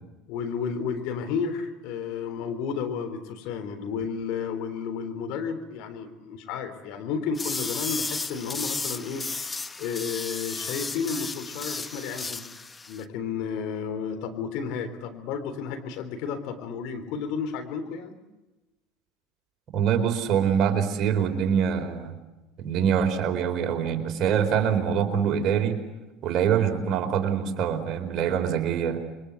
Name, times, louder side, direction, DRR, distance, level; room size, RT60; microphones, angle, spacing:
voice 1, 0.3-12.4 12.9-18.2, left 6 dB, 60° left, 7 dB, 3.6 m, -32 dB
sound 1, 7.3-13.0, left 3 dB, 20° left, 1.1 m, -34 dB
voice 2, 19.7-22.1 22.6-25.8 26.2-29.0, right 8 dB, 50° right, 4 dB, 4.4 m, -24 dB
29.0 x 23.5 x 8.4 m, 1.1 s
hypercardioid pair, 75°, 0 cm